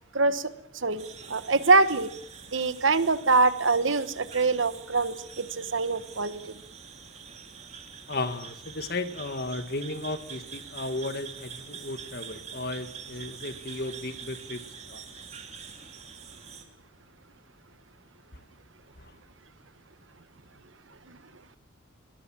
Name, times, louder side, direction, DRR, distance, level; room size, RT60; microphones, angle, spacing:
voice 1, 0.1-2.1 2.5-6.4, right 3 dB, 65° right, 1.3 m, -24 dB
sound 1, 1.0-16.7, right 7 dB, 35° right, 2.7 m, -45 dB
voice 2, 8.1-14.6 14.9-15.0 19.0-19.1, left 2 dB, 50° left, 1.8 m, -34 dB
22.0 x 21.0 x 7.6 m
head